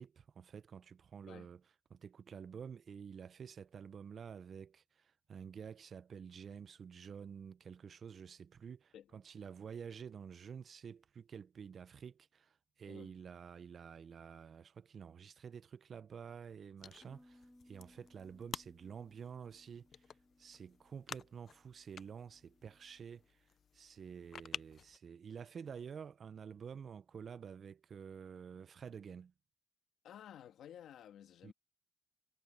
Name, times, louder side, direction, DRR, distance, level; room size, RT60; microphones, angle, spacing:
voice 1, 0.0-1.6 1.9-20.1 20.4-23.5 23.7-29.3 31.4-31.5, right 7 dB, 45° right, 0.4 m, -50 dB
sound 1, 16.8-25.0, left 7 dB, 45° left, 0.3 m, -52 dB
Bass guitar, 17.0-23.3, left 1 dB, 5° left, 6.9 m, -67 dB
voice 2, 30.0-31.5, left 10 dB, 75° left, 2.1 m, -54 dB
cardioid pair, 135°, 0 cm